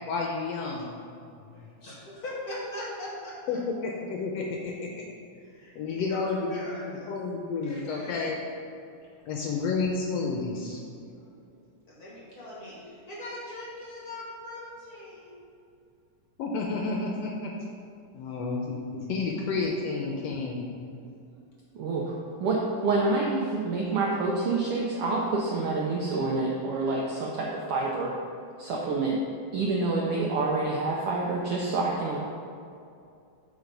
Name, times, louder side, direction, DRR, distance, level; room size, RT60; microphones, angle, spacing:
voice 1, 0.1-0.9 3.5-5.0 5.7-6.6 7.1-8.4 9.3-10.8 16.4-17.5 18.1-20.6, left 4 dB, 75° left, 0 dB, 1.6 m, -30 dB
voice 2, 1.5-3.6 5.3-7.1 7.6-8.4 11.2-11.6 11.9-15.4, left 1 dB, 45° left, -6 dB, 1.4 m, -41 dB
voice 3, 21.7-28.1 28.6-29.2 29.5-32.2, right 3 dB, 75° right, -2 dB, 1.3 m, -27 dB
8.2 x 4.7 x 5.1 m, 2.5 s
omnidirectional pair, 3.4 m